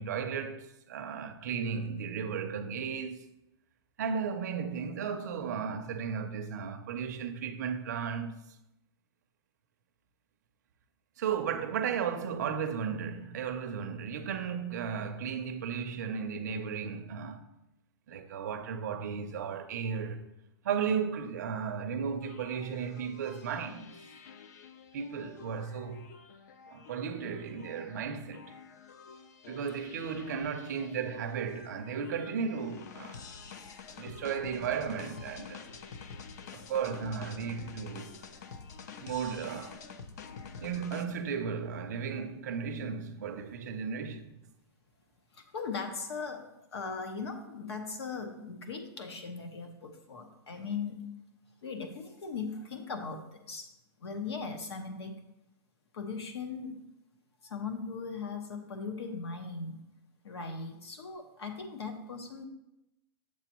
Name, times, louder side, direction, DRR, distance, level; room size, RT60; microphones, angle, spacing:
voice 1, 0.0-3.2 4.0-8.6 11.2-17.4 18.1-20.2 20.6-23.9 24.9-26.0 26.7-28.4 29.5-33.2 34.0-35.7 36.5-38.2 39.0-39.8 40.6-44.3, right 6 dB, 40° right, 0.5 m, -35 dB
sound 1, 22.2-41.1, left 5 dB, 40° left, 0.4 m, -48 dB
voice 2, 45.3-51.0 51.6-53.7 54.0-55.1 55.9-56.8 57.4-59.8 60.2-62.5, left 4 dB, 75° left, 1.2 m, -39 dB
7.5 x 6.7 x 3.0 m
supercardioid pair, 180°, 14 cm